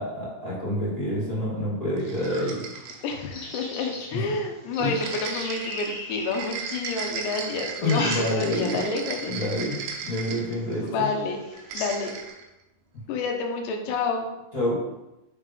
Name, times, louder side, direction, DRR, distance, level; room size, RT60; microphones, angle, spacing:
voice 1, 0.0-2.6 4.1-4.2 4.8-4.9 7.8-8.8 9.2-11.1 14.5-14.8, left 1 dB, 20° left, -9 dB, 1.1 m, -27 dB
sound 1, 2.0-7.0 7.6-8.8 9.2-9.6 10.2-10.3 10.7-10.8 11.2-12.3, left 1 dB, 65° left, 2.2 m, -38 dB
sound 2, 2.0-3.2 5.0-10.9 11.5-12.4, right 6 dB, 80° right, 1.8 m, -36 dB
voice 2, 3.0-9.3 10.8-11.4 11.7-12.2 13.1-14.3, left 3 dB, 90° left, 3 dB, 3.0 m, -29 dB
6.4 x 3.7 x 5.1 m, 0.96 s
omnidirectional pair, 4.8 m